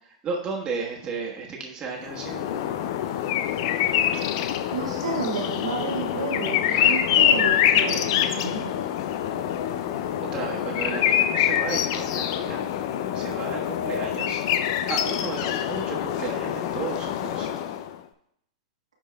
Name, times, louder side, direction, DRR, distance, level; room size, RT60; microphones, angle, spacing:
voice 1, 0.2-2.7 10.3-12.6 13.1-14.4 14.9-17.5, right 4 dB, 25° right, -2 dB, 1.4 m, -34 dB
sound 1, 2.0-18.0, left 10 dB, 50° left, 0.4 m, -25 dB
voice 2, 4.7-8.7, right 4 dB, 80° right, -2 dB, 1.5 m, -31 dB
10.5 x 4.4 x 2.3 m, 0.72 s
hypercardioid pair, 105°, 3 cm